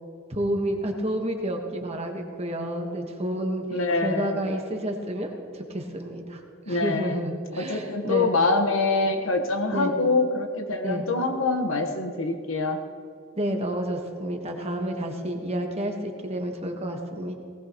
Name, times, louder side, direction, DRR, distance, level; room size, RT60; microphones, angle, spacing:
voice 1, 0.3-6.4 6.7-8.3 9.7-9.9 10.8-11.0 13.4-17.3, right 1 dB, 30° right, 2 dB, 1.4 m, -30 dB
voice 2, 3.7-4.4 6.7-7.3 7.5-12.8, left 3 dB, 65° left, 4 dB, 1.3 m, -25 dB
19.0 x 18.0 x 3.1 m, 2.4 s
head